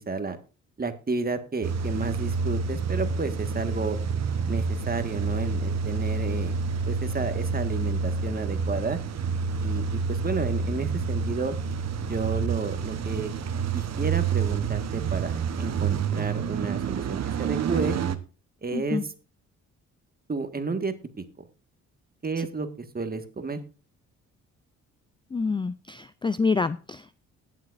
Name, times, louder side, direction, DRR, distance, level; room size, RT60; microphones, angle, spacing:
voice 1, 0.1-0.4 0.8-4.0 4.5-6.6 6.9-9.0 9.6-11.5 12.1-13.3 13.7-18.0 18.6-19.0 20.3-20.9 22.2-22.7 22.9-23.6, right 4 dB, 30° right, 8 dB, 1.7 m, -31 dB
Car / Engine starting / Idling, 1.6-18.2, right 5 dB, 50° right, 1.1 m, -28 dB
voice 2, 18.7-19.0 22.4-22.5 25.3-27.2, left 4 dB, 15° left, 15 dB, 0.4 m, -27 dB
19.5 x 7.4 x 2.6 m, 0.35 s
supercardioid pair, 65°, 32 cm